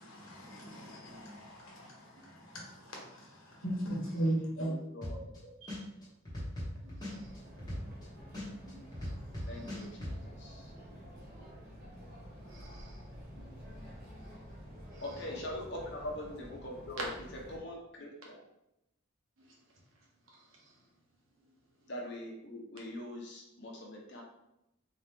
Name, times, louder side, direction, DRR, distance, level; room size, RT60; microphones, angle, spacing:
voice 1, 0.0-4.7, right 1 dB, 85° left, 1.4 m, -37 dB
voice 2, 4.6-5.3 9.5-10.7 15.0-18.4 21.9-24.2, left 1 dB, 55° left, 1.0 m, -43 dB
sound 1, 5.0-5.4 5.7-8.0 8.3-10.1, left 1 dB, 20° left, 1.2 m, -39 dB
voice 3, 6.7-7.6 8.3-9.1 9.4-9.9 12.4-14.5 14.8-15.3 19.4-19.6 19.9-20.8 21.4-21.6 22.0-22.1, right 2 dB, 85° right, 1.2 m, -60 dB
sound 2, 7.0-17.6, equal, 50° right, 1.3 m, -50 dB
3.9 x 2.9 x 3.5 m
head